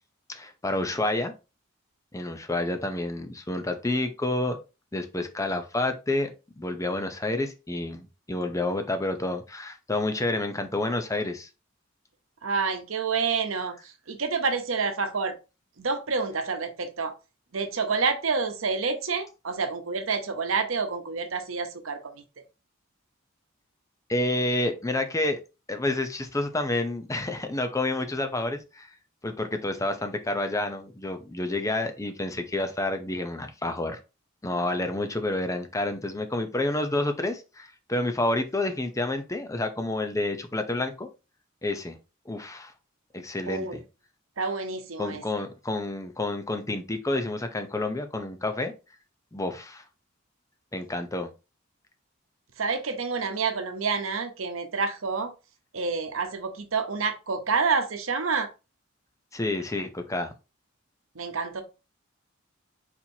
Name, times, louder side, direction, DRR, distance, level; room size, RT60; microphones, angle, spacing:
voice 1, 0.3-1.3 2.1-4.6 4.9-11.5 24.1-25.4 25.7-29.0 29.2-34.0 34.4-41.1 41.6-42.0 42.3-42.7 43.1-43.8 45.0-48.7 49.3-49.8 50.7-51.3 59.3-60.3, left 2 dB, 15° left, 0.6 m, -29 dB
voice 2, 12.4-15.4 15.8-17.1 17.5-22.2 43.5-43.8 44.4-45.2 52.6-55.3 55.7-58.5 61.1-61.6, right 4 dB, 85° right, 0.9 m, -28 dB
4.3 x 4.3 x 2.8 m
head